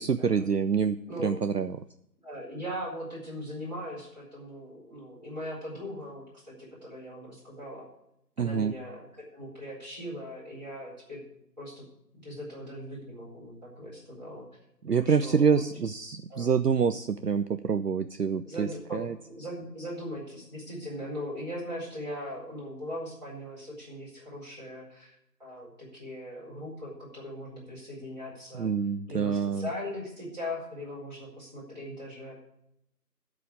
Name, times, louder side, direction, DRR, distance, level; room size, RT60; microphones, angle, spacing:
voice 1, 0.0-1.0 1.2-1.8 8.4-8.7 14.8-19.1 28.5-29.7, right 6 dB, 70° right, 11 dB, 0.5 m, -26 dB
voice 2, 2.2-7.8 8.4-9.0 9.3-11.2 11.6-11.8 12.2-14.4 15.0-15.6 16.3-16.5 18.4-25.1 25.4-28.7 29.1-32.4, equal, 25° right, -8 dB, 4.3 m, -39 dB
12.0 x 5.1 x 8.3 m, 0.78 s
figure-of-eight pair, 175°, 50 cm